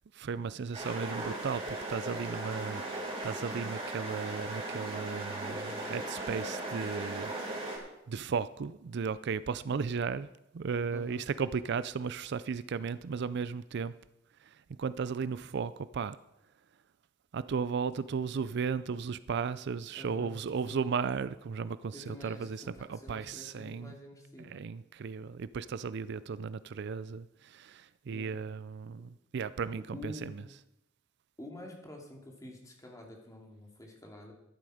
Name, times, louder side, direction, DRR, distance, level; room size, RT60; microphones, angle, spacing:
voice 1, 0.1-7.7 8.1-10.3 10.5-13.9 14.8-16.2 17.3-22.6 22.9-23.9 24.4-30.3, right 5 dB, 60° right, 16 dB, 0.4 m, -35 dB
sound 1, 0.7-7.8, right 2 dB, 30° right, 4.6 m, -38 dB
voice 2, 10.9-11.3 19.9-20.3 20.7-20.8 21.9-24.7 28.1-28.4 29.8-30.4 31.4-34.3, left 1 dB, 15° left, 1 dB, 2.6 m, -48 dB
13.0 x 11.0 x 5.0 m, 0.87 s
head